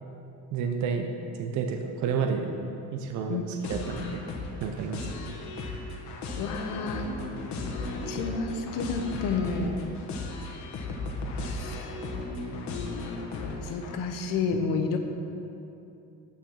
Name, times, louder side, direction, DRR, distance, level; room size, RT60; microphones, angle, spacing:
voice 1, 0.5-1.1 1.4-2.6 2.9-4.2 4.6-5.1 14.5-14.6, right 6 dB, 65° right, 4 dB, 0.7 m, -30 dB
sound 1, 3.6-14.0, left 2 dB, 60° left, 1.2 m, -36 dB
voice 2, 6.4-7.1 8.1-9.8 11.4-12.0 13.4-15.0, left 4 dB, 85° left, 5 dB, 0.9 m, -30 dB
8.9 x 6.4 x 5.8 m, 2.8 s
cardioid pair, 170°, 32 cm